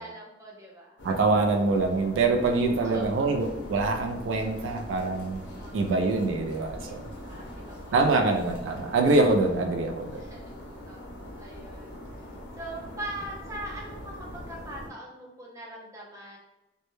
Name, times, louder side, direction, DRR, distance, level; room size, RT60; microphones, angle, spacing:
voice 1, 0.0-1.0 2.8-3.4 5.5-6.1 7.2-8.2 10.2-10.5 10.9-11.9 12.6-16.4, right 1 dB, 15° right, -3 dB, 0.4 m, -41 dB
sound 1, 1.0-14.9, left 1 dB, 65° left, 0.6 m, -42 dB
voice 2, 1.0-5.4 5.7-7.0 7.9-10.2, right 3 dB, 80° right, 4 dB, 0.3 m, -24 dB
2.1 x 2.1 x 3.0 m, 0.96 s
head